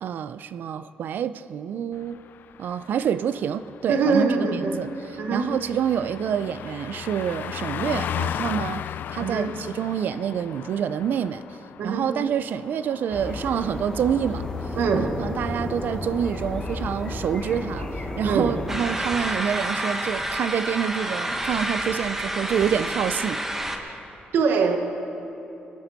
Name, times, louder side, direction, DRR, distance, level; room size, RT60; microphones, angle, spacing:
voice 1, 0.0-2.2 2.6-11.4 11.8-14.5 14.9-17.9 18.2-23.4, right 8 dB, 70° right, 0.4 m, -27 dB
Car passing by, 2.0-13.9 14.2-14.5, left 9 dB, 70° left, 0.3 m, -36 dB
voice 2, 3.9-4.8 5.2-5.5 9.2-9.6 11.8-12.1 14.7-15.2 18.2-18.6 23.8-24.0 24.3-24.8, right 4 dB, 85° right, 1.2 m, -23 dB
sound 1, 13.1-18.8, left 2 dB, 30° left, 1.3 m, -32 dB
sound 2, 18.7-23.8, right 1 dB, 10° right, 1.1 m, -29 dB
22.0 x 11.0 x 4.0 m
cardioid pair, 135°, 3 cm